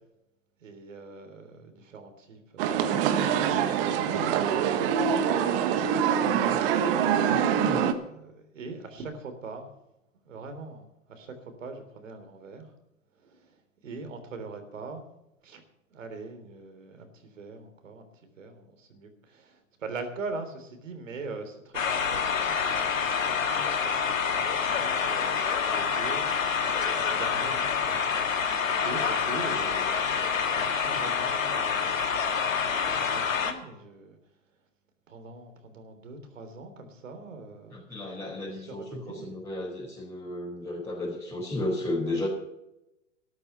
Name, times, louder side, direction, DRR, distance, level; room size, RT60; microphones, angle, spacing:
voice 1, 0.6-9.7 10.3-12.7 13.2-13.5 13.8-15.0 15.4-15.6 15.9-18.1 18.4-30.0 30.5-32.0 32.7-34.2 35.1-39.4, right 3 dB, 75° right, 7 dB, 3.5 m, -43 dB
sound 1, 2.6-7.9, right 8 dB, 45° right, 1.5 m, -24 dB
voice 2, 7.2-7.8 37.7-42.3, left 1 dB, 5° left, -6 dB, 4.5 m, -34 dB
sound 2, 21.7-33.5, left 6 dB, 85° left, 1.9 m, -27 dB
13.0 x 12.0 x 5.6 m, 0.88 s
hypercardioid pair, 120°, 39 cm